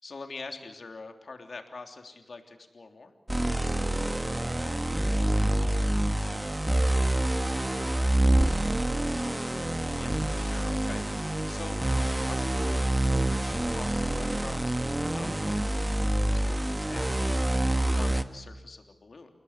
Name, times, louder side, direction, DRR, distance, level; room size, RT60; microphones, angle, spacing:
voice 1, 0.0-3.1 9.9-19.3, left 3 dB, 75° left, 5 dB, 3.3 m, -45 dB
sound 1, 3.3-18.2, right 1 dB, 20° right, 1.5 m, -27 dB
voice 2, 3.9-9.5, left 1 dB, 25° left, -4 dB, 7.7 m, -52 dB
30.0 x 19.0 x 8.3 m, 1.0 s
wide cardioid pair, 60°, 0 cm